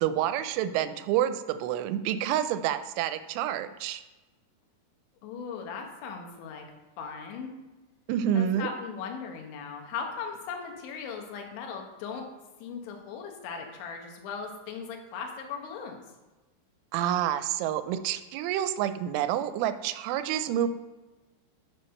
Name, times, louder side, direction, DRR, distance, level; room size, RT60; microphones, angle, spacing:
voice 1, 0.0-4.0 8.1-8.7 16.9-20.7, right 11 dB, 85° right, 11 dB, 3.0 m, -28 dB
voice 2, 5.2-6.7 7.0-7.6 8.3-12.3 12.6-16.0, left 6 dB, 75° left, 2 dB, 3.5 m, -38 dB
8.0 x 6.4 x 6.4 m, 1.2 s
omnidirectional pair, 5.5 m